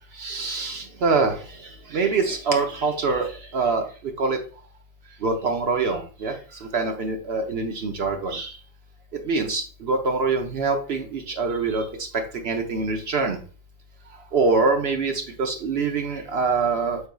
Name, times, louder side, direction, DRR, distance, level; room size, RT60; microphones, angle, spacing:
voice 1, 0.2-3.9 4.2-4.4 5.2-8.5 9.2-11.9 12.1-13.4 14.3-17.0, right 4 dB, 65° right, 4 dB, 1.0 m, -25 dB
4.7 x 4.0 x 2.3 m, 0.37 s
omnidirectional pair, 1.1 m